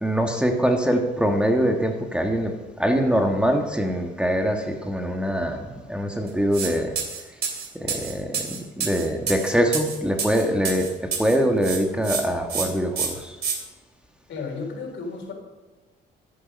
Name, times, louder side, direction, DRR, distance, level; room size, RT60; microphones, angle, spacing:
voice 1, 0.0-2.5 2.8-7.0 7.8-10.9 11.2-13.4, equal, 5° right, 3 dB, 1.6 m, -23 dB
sound 1, 6.5-6.7 7.0-11.4 11.6-12.2 12.5-12.7 13.0-13.6, right 6 dB, 55° right, 2.8 m, -28 dB
voice 2, 14.3-15.3, left 4 dB, 70° left, 1 dB, 3.8 m, -33 dB
14.0 x 9.5 x 5.3 m, 1.2 s
cardioid pair, 90°, 20 cm